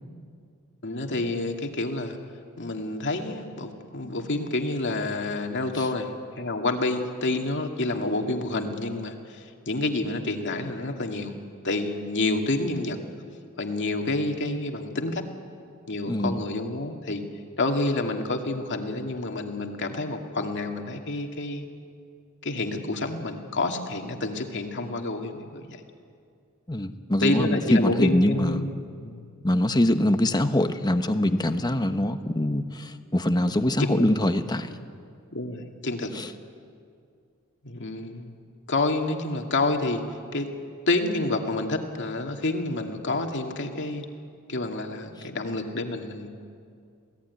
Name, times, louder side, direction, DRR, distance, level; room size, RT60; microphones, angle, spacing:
voice 1, 0.8-2.2 2.6-13.0 13.6-15.3 15.9-17.2 17.6-21.6 22.4-25.8 27.2-29.2 33.8-34.1 35.3-36.2 37.6-38.3 38.7-40.5 40.9-44.1 44.5-46.3, left 2 dB, 55° left, 3 dB, 2.3 m, -28 dB
voice 2, 26.7-28.6 29.4-34.7, left 1 dB, 20° left, 9 dB, 1.1 m, -23 dB
27.5 x 18.0 x 9.6 m, 2.3 s
head